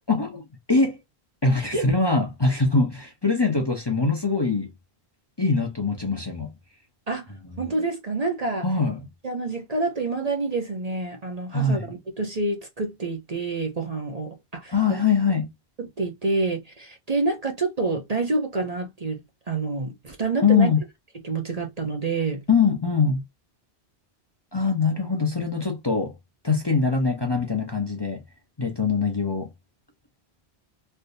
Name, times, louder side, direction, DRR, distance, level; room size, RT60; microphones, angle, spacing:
voice 1, 0.1-1.0 1.4-4.7 5.4-6.5 8.6-9.1 11.5-11.8 14.7-15.5 20.4-20.8 22.5-23.2 24.5-26.1 26.4-28.2 28.6-29.5, left 4 dB, 25° left, 0.8 m, -23 dB
voice 2, 7.6-8.7 9.2-15.0 15.8-19.2 19.5-20.7 21.2-22.4, right 3 dB, 40° right, 0.9 m, -27 dB
3.4 x 2.8 x 2.6 m
omnidirectional pair, 1.1 m